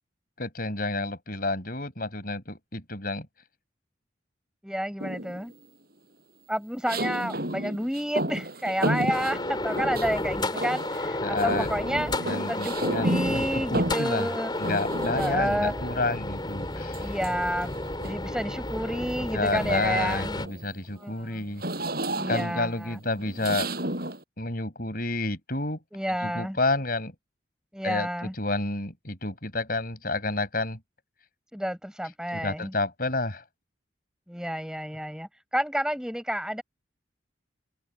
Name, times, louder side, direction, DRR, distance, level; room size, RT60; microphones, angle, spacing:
voice 1, 0.4-3.3 11.2-11.7 12.2-14.3 14.6-17.1 19.3-21.6 22.3-23.7 24.4-25.8 26.2-27.1 27.8-30.8 32.3-33.4, left 2 dB, 50° left, 5.2 m, -30 dB
voice 2, 4.6-5.5 6.5-14.5 15.1-16.2 17.0-17.8 18.0-20.4 21.0-21.4 22.1-23.0 25.9-26.6 27.7-28.3 31.5-32.7 34.3-36.6, equal, 5° right, 5.8 m, -30 dB
sound 1, 5.0-5.5 6.9-10.2 10.6-11.1 11.4-15.8 16.9-18.3 18.8-19.1 19.5-24.2, right 1 dB, 50° right, 7.6 m, -32 dB
sound 2, 9.1-20.5, left 1 dB, 25° left, 4.2 m, -32 dB
open air
head